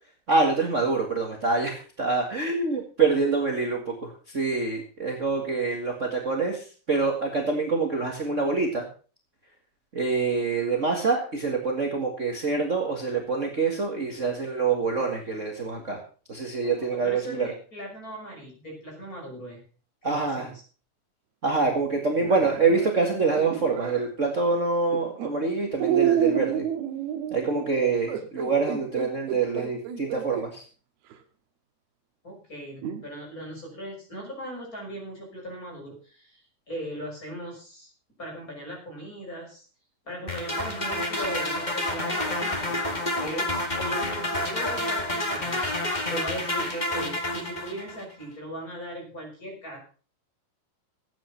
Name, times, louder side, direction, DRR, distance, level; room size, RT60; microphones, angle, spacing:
voice 1, 0.3-8.9 9.9-16.0 16.3-17.5 20.0-20.5 21.4-26.6 27.3-30.6, right 4 dB, 45° right, 1 dB, 0.9 m, -26 dB
voice 2, 16.6-19.6 20.0-20.6 32.2-37.9 38.2-39.7 40.0-49.8, right 1 dB, 20° left, -1 dB, 6.1 m, -39 dB
sound 1, 22.2-24.1 24.9-25.3 25.8-30.5 31.1-31.2 32.8-33.0, right 10 dB, 75° right, 3.3 m, -29 dB
sound 2, 40.3-48.0, left 1 dB, 40° left, 0.6 m, -29 dB
14.0 x 9.0 x 5.9 m, 0.39 s
omnidirectional pair, 4.5 m